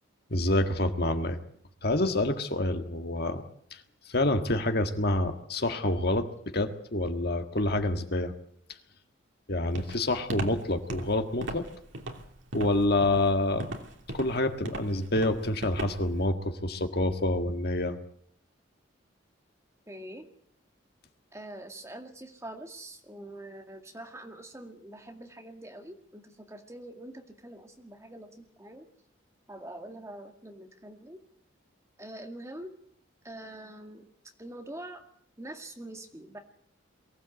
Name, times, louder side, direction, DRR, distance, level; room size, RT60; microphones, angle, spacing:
voice 1, 0.3-1.4 1.8-3.4 3.7-6.3 6.5-8.3 9.5-11.6 12.5-13.7 14.1-18.0, left 1 dB, 50° left, 6 dB, 1.7 m, -27 dB
Walk footsteps, 9.8-16.2, right 1 dB, 70° right, 2.9 m, -38 dB
voice 2, 19.9-20.3 21.3-28.9 29.5-31.2 32.0-32.7 33.2-34.1 34.4-35.0 35.4-36.4, right 1 dB, 15° right, 3 dB, 2.1 m, -44 dB
23.0 x 16.0 x 8.2 m, 0.66 s
head